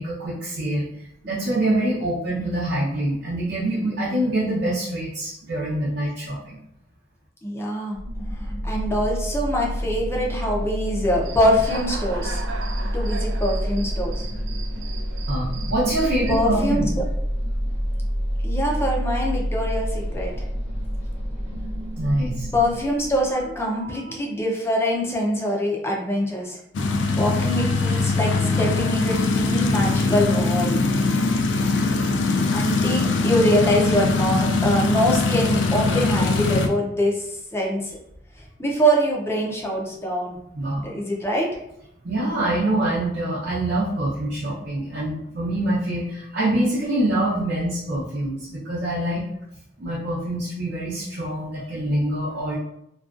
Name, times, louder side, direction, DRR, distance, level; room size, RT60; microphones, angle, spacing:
voice 1, 0.0-6.6 15.3-16.9 22.0-22.5 23.8-24.1 40.5-40.9 42.0-49.2 49.8-52.6, right 1 dB, 65° right, -9 dB, 0.7 m, -25 dB
voice 2, 7.4-8.0 8.6-12.4 12.9-14.2 16.3-16.8 18.4-20.3 22.5-26.6 27.2-30.8 32.5-37.2 37.5-37.9 38.6-40.4 40.8-41.5, equal, 15° left, -1 dB, 0.4 m, -24 dB
sound 1, 7.9-23.9, equal, 15° right, 0.8 m, -28 dB
Human voice / Cricket, 11.2-16.4, right 4 dB, 85° right, 0.3 m, -38 dB
sound 2, 26.7-36.7, left 3 dB, 75° left, 0.3 m, -21 dB
2.4 x 2.2 x 2.4 m, 0.78 s
head